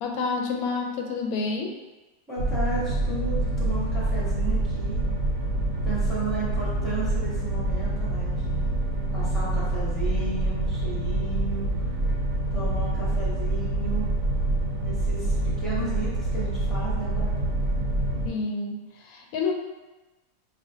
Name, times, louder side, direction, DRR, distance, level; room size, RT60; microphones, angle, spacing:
voice 1, 0.0-1.8 18.2-19.5, left 4 dB, 90° left, 2 dB, 1.0 m, -29 dB
voice 2, 2.3-5.0 5.8-8.6 9.1-11.9 12.5-14.1 14.8-17.4, right 2 dB, ahead, -8 dB, 1.0 m, -34 dB
sound 1, 2.4-18.3, right 2 dB, 70° right, 1.3 m, -26 dB
5.5 x 2.4 x 2.6 m, 1.1 s
omnidirectional pair, 1.5 m